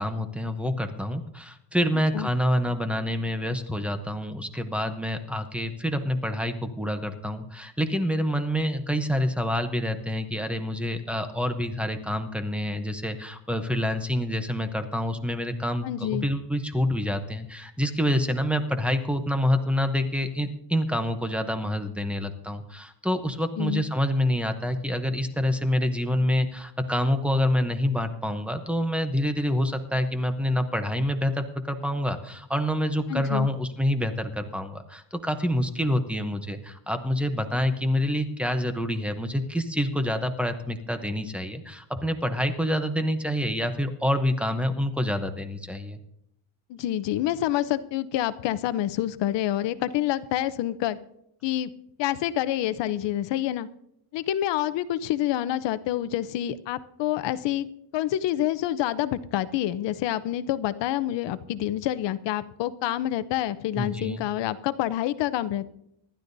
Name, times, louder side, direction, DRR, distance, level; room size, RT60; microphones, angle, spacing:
voice 1, 0.0-46.0 63.7-64.2, equal, ahead, 7 dB, 0.7 m, -27 dB
voice 2, 15.8-16.3 23.6-23.8 33.1-33.5 46.7-51.0 51.4-51.7 52.0-53.7 54.1-57.7 57.9-65.7, left 13 dB, 60° left, 14 dB, 0.8 m, -27 dB
25.5 x 12.0 x 2.7 m, 0.77 s
cardioid pair, 165°, 50 cm